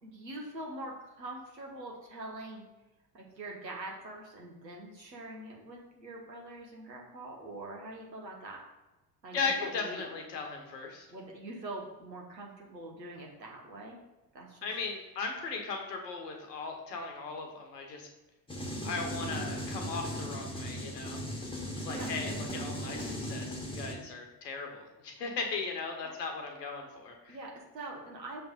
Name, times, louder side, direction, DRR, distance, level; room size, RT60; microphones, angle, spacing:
voice 1, 0.0-2.6 3.1-8.6 9.2-10.1 11.1-14.0 14.3-14.6 21.9-22.1 26.0-26.1 27.3-28.4, right 2 dB, 85° right, -1 dB, 1.1 m, -44 dB
voice 2, 9.3-11.1 14.6-18.1 18.8-21.2 21.8-27.4, left 4 dB, 75° left, 3 dB, 1.2 m, -37 dB
sound 1, 18.5-23.9, equal, 10° left, 1.2 m, -37 dB
6.2 x 3.4 x 5.2 m, 1.1 s
figure-of-eight pair, 55°, 49 cm